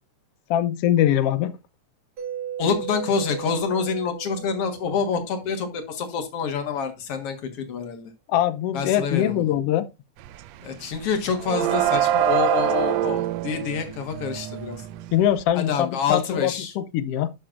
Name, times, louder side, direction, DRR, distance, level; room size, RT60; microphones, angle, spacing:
voice 1, 0.5-1.5 8.3-9.9 15.1-17.3, left 11 dB, 90° left, 1.3 m, -22 dB
Mallet percussion, 2.2-5.9, right 9 dB, 60° right, 3.2 m, -37 dB
voice 2, 2.6-8.1 8.7-9.4 10.6-14.8 15.5-16.7, left 6 dB, 55° left, 2.3 m, -27 dB
sound 1, 10.2-10.5 10.8-15.4, right 12 dB, 80° right, 1.6 m, -25 dB
12.0 x 6.7 x 2.5 m
omnidirectional pair, 3.5 m